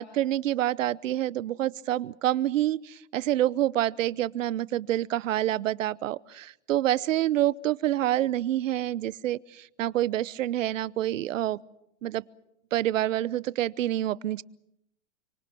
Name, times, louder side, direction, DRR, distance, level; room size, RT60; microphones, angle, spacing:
voice 1, 0.0-11.6 12.0-12.2 12.7-14.4, right 13 dB, 85° right, 20 dB, 0.9 m, -27 dB
28.0 x 25.0 x 6.1 m, 0.79 s
hypercardioid pair, 130°, 37 cm